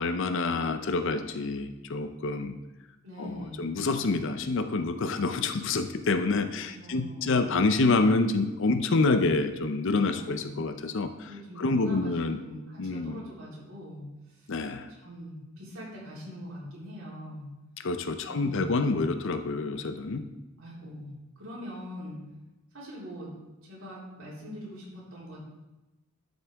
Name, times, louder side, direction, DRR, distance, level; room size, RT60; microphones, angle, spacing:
voice 1, 0.0-2.5 3.2-12.4 12.8-13.2 14.5-14.9 17.8-20.3, left 3 dB, 65° left, 9 dB, 0.6 m, -27 dB
voice 2, 3.0-3.7 6.5-7.4 10.1-10.5 11.3-14.5 14.9-17.5 18.3-18.9 20.6-21.1 21.4-22.2 22.7-23.3 23.6-25.4, equal, 75° right, -6 dB, 3.6 m, -43 dB
12.5 x 6.5 x 3.5 m, 1.0 s
head